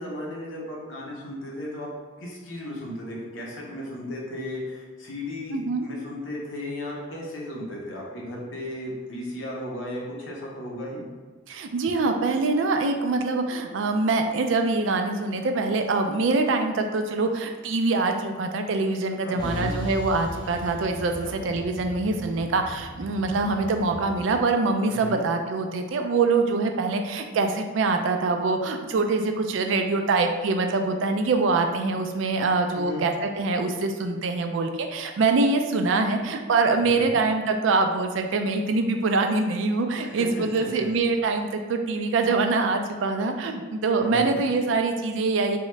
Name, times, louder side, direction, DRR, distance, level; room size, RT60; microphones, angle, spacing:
voice 1, 0.0-1.9 2.2-11.0 19.2-19.8 21.3-21.4 24.9-25.2 32.7-33.1 36.9-37.2 40.0-40.9 44.0-44.4, left 1 dB, 85° left, -3 dB, 0.8 m, -35 dB
voice 2, 5.5-5.9 11.5-45.6, right 3 dB, 75° right, 5 dB, 0.4 m, -24 dB
Truck, 19.4-24.4, left 1 dB, 25° left, 0.3 m, -37 dB
3.6 x 2.1 x 3.1 m, 1.4 s
head